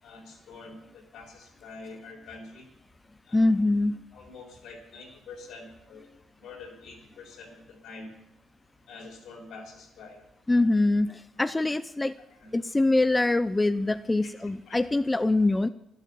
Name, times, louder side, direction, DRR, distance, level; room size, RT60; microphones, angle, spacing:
voice 1, 0.0-2.7 3.3-3.5 4.1-6.0 6.4-8.1 8.9-10.2 10.6-10.7 11.5-11.6 12.4-12.5 14.2-14.3 14.7-14.8, left 3 dB, 80° left, 2 dB, 4.8 m, -46 dB
voice 2, 3.3-4.0 10.5-12.1 12.5-15.7, left 2 dB, 15° left, 12 dB, 0.6 m, -24 dB
12.5 x 12.0 x 8.6 m, 0.82 s
cardioid pair, 90°, 0 cm